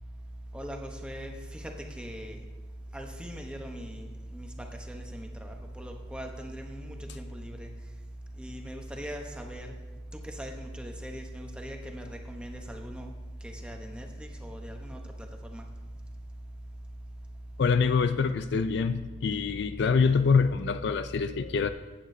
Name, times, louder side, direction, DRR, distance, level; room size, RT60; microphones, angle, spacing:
voice 1, 0.5-2.5 2.9-7.7 8.4-9.7 10.1-13.1 13.4-15.7, equal, 5° right, 2 dB, 0.9 m, -40 dB
voice 2, 17.6-21.7, left 5 dB, 60° left, 11 dB, 0.4 m, -25 dB
15.0 x 8.5 x 2.7 m, 1.2 s
head